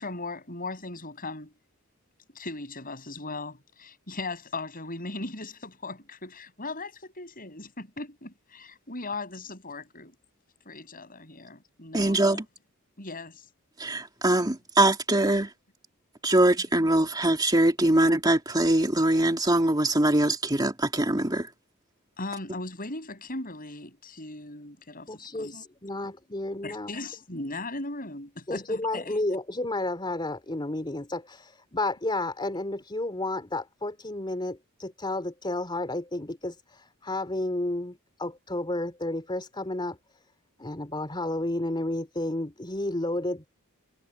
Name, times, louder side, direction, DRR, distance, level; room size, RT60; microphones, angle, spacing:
voice 1, 0.0-1.5 2.3-10.1 10.7-12.4 13.0-13.5 22.2-25.6 26.6-29.2, left 2 dB, 40° left, 7.7 m, -38 dB
voice 2, 11.9-12.4 13.8-15.5 16.2-21.5, right 1 dB, 20° right, 2.7 m, -23 dB
voice 3, 25.1-26.9 28.5-40.0 40.6-43.5, left 2 dB, 20° left, 3.1 m, -31 dB
head